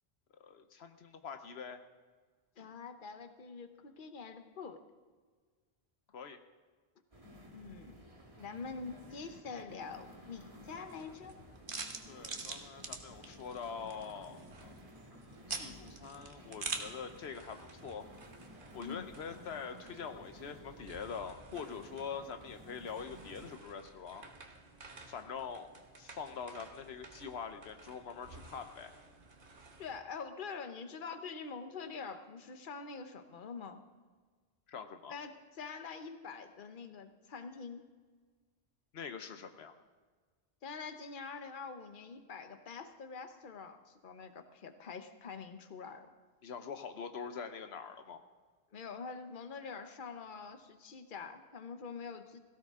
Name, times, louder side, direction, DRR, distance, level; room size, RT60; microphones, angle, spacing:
voice 1, 0.3-1.8 6.1-6.4 12.1-14.7 15.5-18.1 18.7-24.3 25.1-25.7 26.0-28.9 34.7-35.1 38.9-39.8 46.4-48.2, left 6 dB, 85° left, 8 dB, 1.1 m, -44 dB
voice 2, 2.6-4.8 7.5-8.0 8.4-11.4 18.8-19.1 29.8-33.8 35.1-37.8 40.6-46.1 48.7-52.4, left 5 dB, 55° left, 8 dB, 1.1 m, -45 dB
sound 1, 7.1-23.6, equal, 35° right, 1.9 m, -55 dB
sound 2, 10.6-30.0, right 4 dB, 55° right, 1.3 m, -49 dB
17.0 x 16.0 x 3.7 m, 1.4 s
omnidirectional pair, 1.0 m